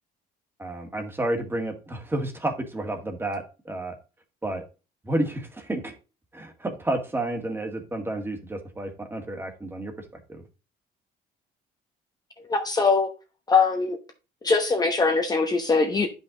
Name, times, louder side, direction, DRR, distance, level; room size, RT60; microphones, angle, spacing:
voice 1, 0.6-3.9 4.4-4.6 5.0-5.9 6.3-9.9 10.3-10.4, right 1 dB, 15° right, 1.8 m, -30 dB
voice 2, 12.5-13.1 13.5-14.0 14.4-16.1, left 4 dB, 25° left, 1.0 m, -22 dB
9.5 x 5.5 x 3.8 m
cardioid pair, 110°, 17 cm